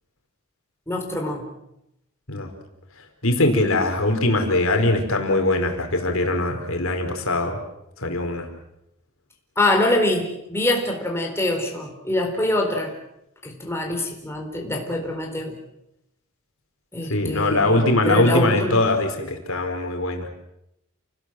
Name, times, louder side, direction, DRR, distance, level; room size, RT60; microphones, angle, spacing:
voice 1, 0.9-1.5 9.6-13.0 13.4-15.6 16.9-18.8, left 1 dB, 10° left, 1 dB, 4.4 m, -24 dB
voice 2, 3.2-7.6 8.0-8.5 17.1-20.3, left 2 dB, 70° left, 4 dB, 4.7 m, -21 dB
29.5 x 20.0 x 7.8 m, 0.84 s
head